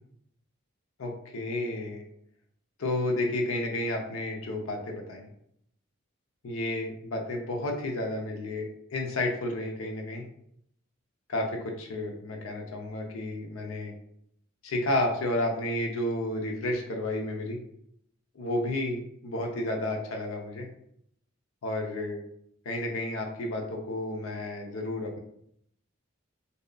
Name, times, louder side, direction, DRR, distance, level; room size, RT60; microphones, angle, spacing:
voice 1, 1.0-2.0 2.8-5.3 6.4-10.2 11.3-13.9 14.6-17.6 18.4-20.7 21.6-22.2 22.7-25.2, left 1 dB, 85° left, 2 dB, 0.5 m, -31 dB
2.7 x 2.2 x 2.3 m, 0.70 s
head